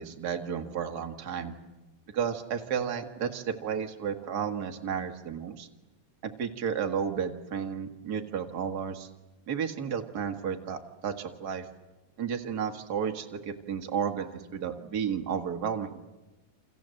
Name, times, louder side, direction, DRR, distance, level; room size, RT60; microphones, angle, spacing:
voice 1, 0.0-1.5 2.1-5.7 6.4-9.1 9.5-11.7 12.2-16.0, right 7 dB, 40° right, 5 dB, 1.8 m, -32 dB
28.5 x 26.5 x 7.8 m, 1.1 s
omnidirectional pair, 3.5 m